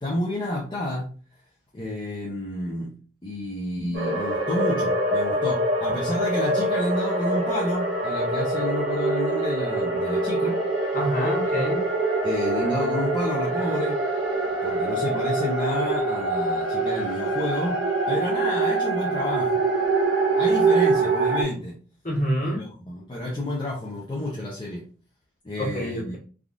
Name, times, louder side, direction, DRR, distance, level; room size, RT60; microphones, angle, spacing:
voice 1, 0.0-1.1 1.7-2.9 3.2-10.6 12.2-14.0 14.6-19.6 20.4-21.8 22.6-24.9 25.4-26.2, left 1 dB, 25° left, -3 dB, 0.5 m, -30 dB
sound 1, 3.9-21.4, right 2 dB, 75° right, 1.4 m, -24 dB
voice 2, 10.9-11.9 22.0-22.6 25.6-26.2, equal, 40° left, -4 dB, 1.3 m, -27 dB
3.4 x 2.3 x 2.5 m, 0.38 s
head